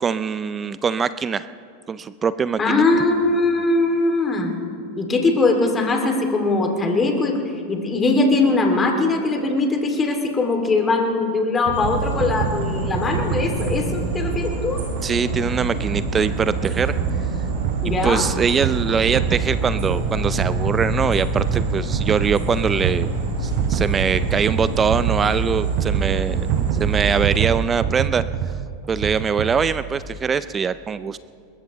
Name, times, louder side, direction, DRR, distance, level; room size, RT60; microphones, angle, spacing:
voice 1, 0.0-1.5 1.9-2.8 15.0-16.9 17.8-23.1 23.4-26.5 26.7-28.2 28.9-31.2, right 6 dB, 25° right, 15 dB, 0.4 m, -22 dB
voice 2, 2.6-4.6 5.0-14.8 17.8-18.3, left 3 dB, 20° left, 3 dB, 2.5 m, -21 dB
sound 1, 11.7-30.0, right 9 dB, 50° right, 0.8 m, -28 dB
sound 2, 11.7-27.4, right 3 dB, 70° right, 4.9 m, -26 dB
21.0 x 21.0 x 3.1 m, 2.3 s
hypercardioid pair, 90°, 0 cm